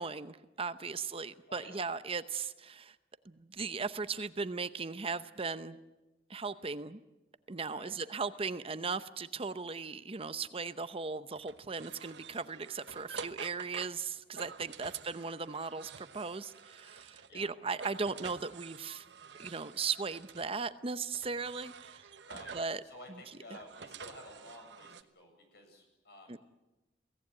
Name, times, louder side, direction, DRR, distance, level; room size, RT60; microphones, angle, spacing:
voice 1, 0.0-2.9 3.3-5.8 6.3-7.0 7.5-19.0 19.4-22.1 22.5-22.8 26.3-26.4, right 4 dB, 35° right, 13 dB, 0.7 m, -37 dB
voice 2, 1.5-1.8 7.7-8.0 12.3-12.4 17.3-17.5 22.3-22.6 22.8-26.4, left 1 dB, 65° left, 4 dB, 7.6 m, -52 dB
sound 1, 11.3-17.4 17.7-20.5 21.1-22.8 23.3-25.0, right 5 dB, 80° right, 1.1 m, -49 dB
23.0 x 17.5 x 9.9 m, 1.0 s
head